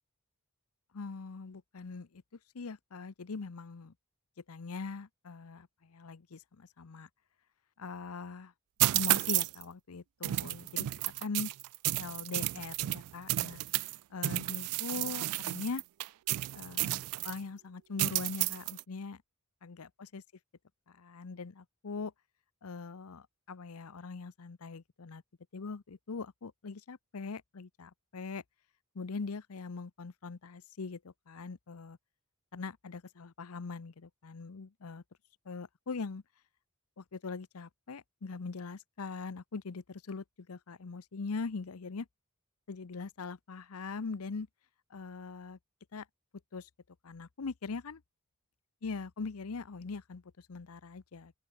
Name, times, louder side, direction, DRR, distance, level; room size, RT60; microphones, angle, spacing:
voice 1, 0.9-2.2 2.5-3.9 4.5-7.1 7.8-8.5 8.9-10.9 11.2-11.5 12.0-13.6 14.1-15.8 16.5-19.2 19.6-20.2 20.9-22.1 22.6-25.2 25.5-28.4 28.9-32.0 32.5-35.0 35.5-36.2 37.0-42.1 42.7-44.5 44.9-45.6 45.9-46.1 46.5-46.7 47.0-48.0 48.8-51.3, left 4 dB, 75° left, 0.7 m, -41 dB
sound 1, 8.8-9.6 10.2-14.0 14.2-17.4 18.0-18.8, right 17 dB, 80° right, 0.3 m, -32 dB
open air
head